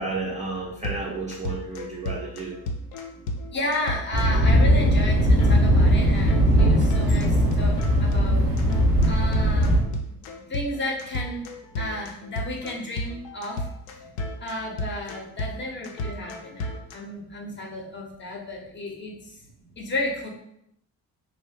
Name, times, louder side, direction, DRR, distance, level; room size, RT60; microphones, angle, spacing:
voice 1, 0.0-2.6, right 3 dB, 15° right, -5 dB, 0.5 m, -32 dB
sound 1, 0.8-5.1 5.4-5.5 5.8-6.0 6.3-16.9, left 1 dB, 60° left, 0.6 m, -34 dB
voice 2, 2.8-7.7 8.0-8.5 9.1-9.8 10.5-11.5 11.8-13.7 14.4-19.4 19.8-20.3, left 1 dB, 25° left, -1 dB, 0.7 m, -33 dB
Thunder, 4.1-9.8, equal, 85° right, 0.6 m, -19 dB
3.0 x 2.0 x 2.7 m, 0.76 s
figure-of-eight pair, 45°, 47 cm